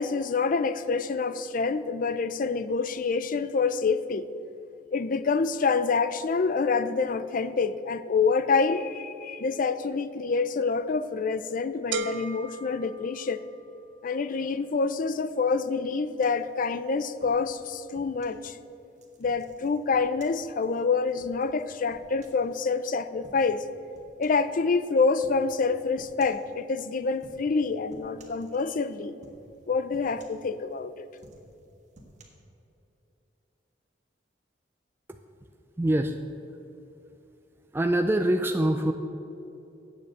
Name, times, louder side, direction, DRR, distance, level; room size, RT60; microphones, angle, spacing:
voice 1, 0.0-4.3 4.9-13.4 14.0-18.6 19.2-23.7 24.2-29.1 29.7-31.1, left 4 dB, 50° left, 13 dB, 0.4 m, -27 dB
sound 1, 11.9-13.8, right 4 dB, 85° right, 0.6 m, -36 dB
sound 2, 16.2-18.4 19.0-22.8 23.2-23.6 23.9-24.5 25.2-25.5 26.0-26.5 27.1-27.6 27.9-28.9 29.2-29.6 29.9-30.8 31.1-32.2, right 1 dB, 40° right, 1.5 m, -54 dB
voice 2, 35.8-36.2 37.7-38.9, right 1 dB, 15° right, 5 dB, 0.4 m, -24 dB
8.4 x 7.4 x 7.7 m, 2.8 s
head